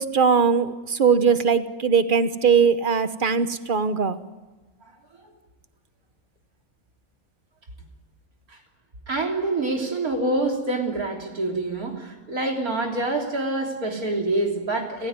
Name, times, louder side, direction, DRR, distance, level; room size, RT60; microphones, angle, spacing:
voice 1, 0.0-4.2, right 6 dB, 40° right, 12 dB, 1.2 m, -20 dB
voice 2, 9.1-15.1, right 2 dB, 80° right, 2 dB, 3.8 m, -26 dB
29.5 x 15.0 x 9.6 m, 1.2 s
omnidirectional pair, 1.5 m